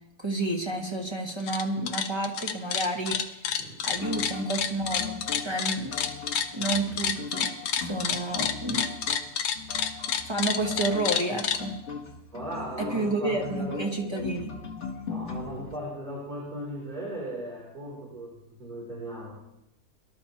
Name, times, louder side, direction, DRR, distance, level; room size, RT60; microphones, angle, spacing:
voice 1, 0.2-3.4 3.8-6.0 6.5-8.9 10.3-11.8 12.8-14.5, right 2 dB, 15° right, 0 dB, 1.5 m, -30 dB
sound 1, 1.3-1.6 1.9-11.6, left 8 dB, 75° left, 1.4 m, -28 dB
voice 2, 3.6-4.2 12.3-14.3 15.0-19.3, right 1 dB, 60° right, -7 dB, 4.2 m, -38 dB
sound 2, 4.0-15.8, left 5 dB, 45° left, 1.5 m, -39 dB
22.5 x 12.5 x 3.0 m, 0.87 s
omnidirectional pair, 1.7 m